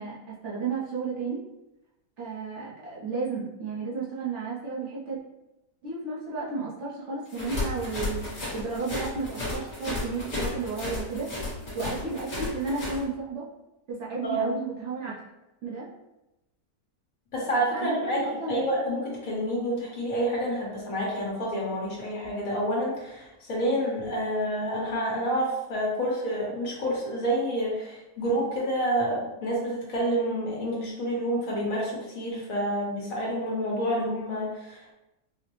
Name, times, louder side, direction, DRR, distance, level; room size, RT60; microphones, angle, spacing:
voice 1, 0.0-1.4 2.2-5.2 5.8-11.3 11.7-13.5 13.9-15.2 15.6-15.9 17.7-18.6, right 4 dB, 55° right, -7 dB, 1.0 m, -33 dB
sound 1, 7.3-13.0, left 2 dB, 30° left, 1.0 m, -33 dB
voice 2, 14.2-14.5 17.3-34.9, equal, 60° left, -4 dB, 1.5 m, -28 dB
4.8 x 2.1 x 3.0 m, 0.94 s
omnidirectional pair, 1.7 m